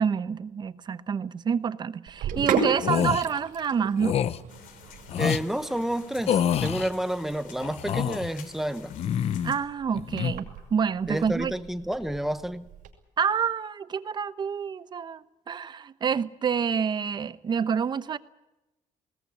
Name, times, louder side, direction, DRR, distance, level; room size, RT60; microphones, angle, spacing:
voice 1, 0.0-4.2 9.4-11.5 13.2-18.2, right 6 dB, 35° right, 0.9 m, -28 dB
Sink (filling or washing), 2.1-12.9, right 5 dB, 90° right, 5.7 m, -36 dB
sound 1, 2.8-3.2 4.0-4.4 5.1-5.4 6.3-6.9 7.6-8.3 8.9-9.6 9.9-10.3, left 9 dB, 50° left, 0.8 m, -27 dB
sound 2, 4.5-9.6, left 8 dB, 90° left, 3.5 m, -50 dB
voice 2, 5.2-8.9 11.1-12.7, right 1 dB, ahead, 1.0 m, -30 dB
21.0 x 18.5 x 9.5 m
cardioid pair, 155°, 13 cm